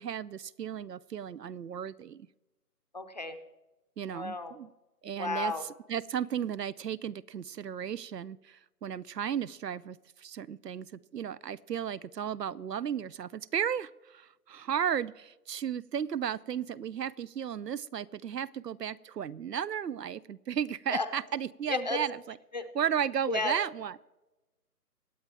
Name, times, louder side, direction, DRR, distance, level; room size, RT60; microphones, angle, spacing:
voice 1, 0.0-2.3 4.0-4.7 5.0-22.4 22.7-24.0, right 8 dB, 85° right, 22 dB, 0.7 m, -34 dB
voice 2, 2.9-3.4 4.1-4.5 5.2-5.6 20.9-21.1 21.7-22.0 22.5-22.6 23.3-23.5, left 3 dB, 25° left, 9 dB, 0.7 m, -32 dB
24.0 x 8.7 x 3.5 m, 1.1 s
hypercardioid pair, 160°, 48 cm